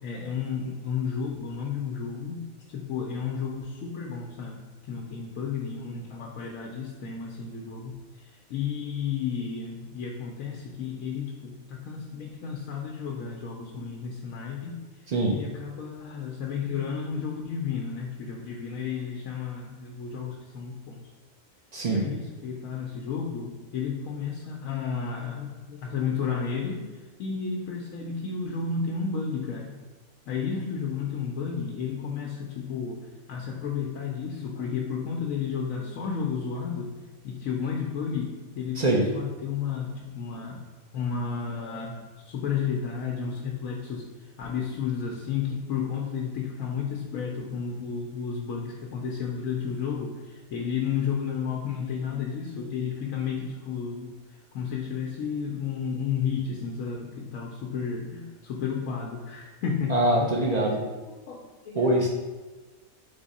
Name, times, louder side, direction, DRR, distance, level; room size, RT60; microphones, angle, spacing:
voice 1, 0.0-2.4 2.7-21.0 21.9-29.7 30.3-33.0 33.3-36.9 37.2-40.6 40.9-59.9 61.3-62.0, left 6 dB, 75° left, -1 dB, 1.0 m, -32 dB
voice 2, 15.1-15.4 21.7-22.1 38.8-39.1 59.9-60.8 61.7-62.1, right 1 dB, 90° right, -2 dB, 0.3 m, -23 dB
3.5 x 3.5 x 4.0 m, 1.3 s
omnidirectional pair, 1.4 m